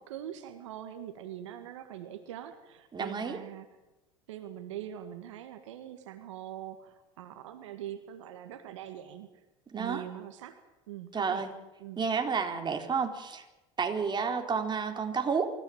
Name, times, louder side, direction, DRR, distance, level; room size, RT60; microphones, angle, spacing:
voice 1, 0.0-3.7 4.3-9.3 9.7-10.6 10.9-11.5 11.8-12.0, right 11 dB, 85° right, 8 dB, 1.9 m, -43 dB
voice 2, 2.9-3.4 9.7-10.0 11.1-11.5 12.0-13.4 13.8-15.5, right 5 dB, 30° right, 4 dB, 4.0 m, -30 dB
25.0 x 15.0 x 8.8 m, 1.0 s
hypercardioid pair, 80°, 15 cm